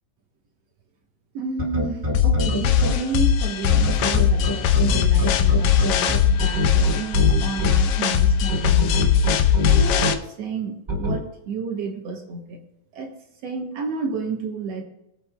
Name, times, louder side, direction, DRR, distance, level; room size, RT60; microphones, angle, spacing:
voice 1, 1.3-9.1 9.6-12.6 12.9-13.1 13.4-14.8, right 4 dB, 60° right, 2 dB, 1.8 m, -31 dB
sound 1, 1.6-2.9 3.7-7.7 8.5-10.1 10.9-11.1, equal, 15° right, 2.0 m, -24 dB
sound 2, 2.1-10.1, left 8 dB, 85° left, 1.6 m, -20 dB
24.5 x 8.3 x 2.3 m, 0.87 s
omnidirectional pair, 4.3 m